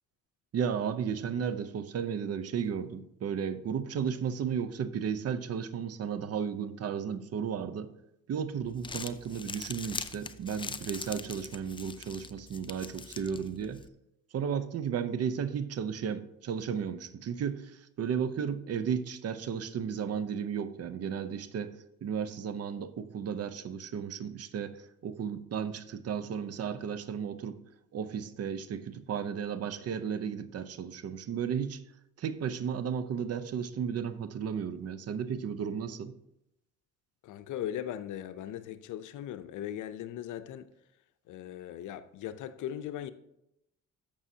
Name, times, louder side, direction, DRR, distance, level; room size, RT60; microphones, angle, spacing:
voice 1, 0.5-7.9 8.3-13.8 14.3-27.6 27.9-31.8 32.2-36.1, right 7 dB, 55° right, 0.7 m, -34 dB
Crumpling crinkling, 8.6-13.9, left 4 dB, 15° left, 0.4 m, -42 dB
voice 2, 37.2-40.7 41.3-43.1, left 11 dB, 80° left, 0.6 m, -39 dB
11.0 x 7.0 x 2.8 m
cardioid pair, 90°, 30 cm